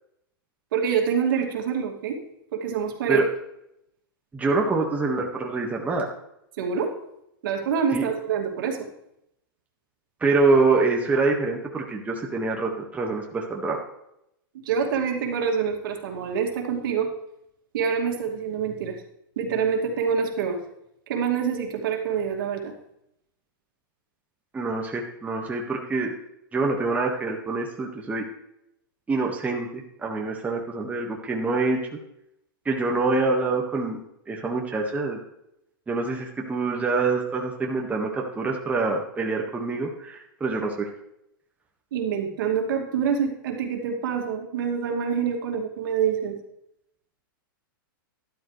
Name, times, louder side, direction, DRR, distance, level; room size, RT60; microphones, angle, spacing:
voice 1, 0.7-2.2 2.5-3.2 6.6-6.9 7.4-8.8 14.6-17.1 17.7-19.0 19.4-20.6 21.1-22.7 41.9-46.4, right 7 dB, 65° right, 2 dB, 2.5 m, -26 dB
voice 2, 4.3-6.1 7.9-8.1 10.2-13.8 24.5-26.1 26.5-28.2 29.1-31.8 32.6-34.0 34.3-35.2 35.9-40.9, right 3 dB, 10° right, 0 dB, 1.7 m, -25 dB
12.5 x 12.0 x 3.3 m, 0.79 s
hypercardioid pair, 130°, 12 cm